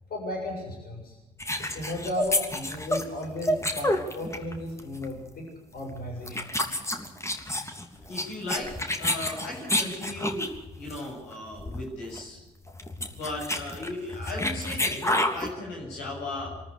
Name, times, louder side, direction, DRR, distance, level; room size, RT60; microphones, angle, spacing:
voice 1, 0.1-1.2 1.6-6.7, left 1 dB, 55° left, 0 dB, 7.4 m, -35 dB
sound 1, 1.4-4.5 4.8-5.1 5.8-6.0 6.3-10.6 10.9-11.1 11.3-11.4 11.6-11.9 12.1-12.2 12.7-15.5, left 1 dB, 15° left, 3.2 m, -29 dB
voice 2, 8.1-12.4 13.2-16.7, left 2 dB, 75° left, -3 dB, 7.7 m, -36 dB
24.5 x 13.5 x 8.5 m, 1.0 s
hypercardioid pair, 45°, 18 cm